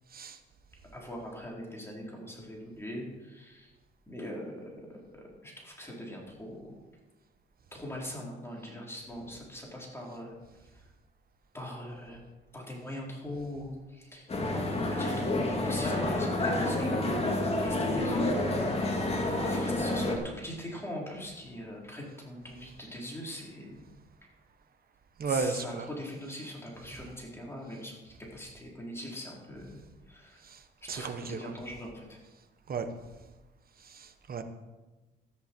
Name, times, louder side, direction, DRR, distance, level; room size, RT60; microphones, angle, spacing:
voice 1, 0.9-3.7 4.1-5.0 5.4-6.7 7.7-10.3 10.6-10.8 11.5-14.3 14.8-19.1 19.5-23.8 25.2-29.8 30.1-30.5 30.8-32.2, left 1 dB, 10° left, -3 dB, 4.1 m, -42 dB
sound 1, 14.3-20.2, left 1 dB, 30° left, 2.4 m, -29 dB
voice 2, 25.2-25.8 30.5-30.6 30.9-31.4 32.7-32.9 33.9-34.4, right 4 dB, 50° right, 8 dB, 1.4 m, -33 dB
13.5 x 10.5 x 4.7 m, 1.1 s
cardioid pair, 90°, 20 cm